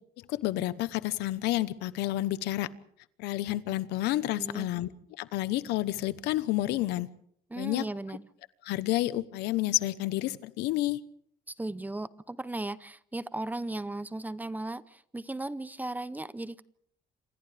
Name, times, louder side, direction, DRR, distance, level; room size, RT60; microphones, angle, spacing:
voice 1, 0.3-2.7 3.2-4.9 5.2-7.1 7.6-7.8 8.6-11.0, left 16 dB, 90° left, 1.0 m, -30 dB
voice 2, 4.4-4.7 7.5-8.3 11.5-16.6, right 2 dB, 10° right, 0.7 m, -36 dB
28.0 x 27.0 x 3.5 m
cardioid pair, 110°, 17 cm